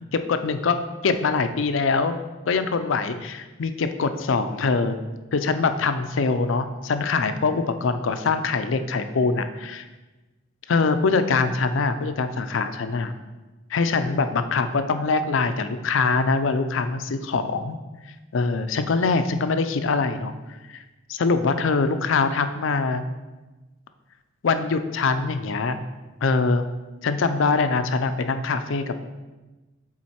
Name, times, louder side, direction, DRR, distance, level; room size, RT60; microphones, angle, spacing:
voice 1, 0.1-0.8 1.0-2.2 2.5-5.0 5.3-9.8 10.7-13.1 13.7-17.8 18.3-20.3 20.7-20.8 21.1-23.0 24.4-25.8 26.2-26.7 27.0-29.0, left 4 dB, 75° left, 9 dB, 0.5 m, -23 dB
7.5 x 3.9 x 4.3 m, 1.2 s
head